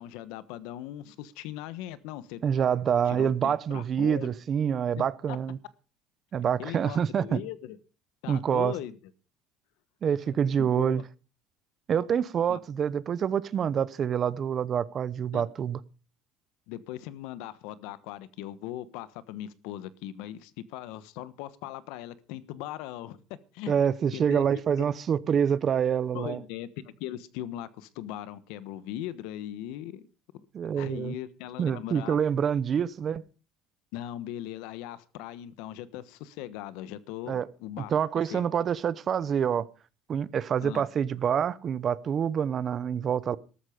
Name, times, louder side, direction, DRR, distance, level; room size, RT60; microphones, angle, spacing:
voice 1, 0.0-2.4 3.1-4.3 4.9-5.0 5.3-5.4 6.6-7.8 8.2-9.0 10.6-11.0 12.5-12.6 15.3-15.4 16.7-23.7 24.1-24.4 24.8-24.9 26.1-30.1 30.7-32.2 33.9-37.9 38.3-38.4 40.6-40.8, left 13 dB, 75° left, 1.2 m, -39 dB
voice 2, 2.4-5.6 6.3-7.4 8.3-8.7 10.0-11.0 11.9-15.8 23.7-26.4 30.5-31.1 31.6-33.2 37.3-37.5 37.9-39.7 40.1-43.4, right 8 dB, 30° right, 0.7 m, -26 dB
13.5 x 13.0 x 5.1 m
cardioid pair, 160°, 0 cm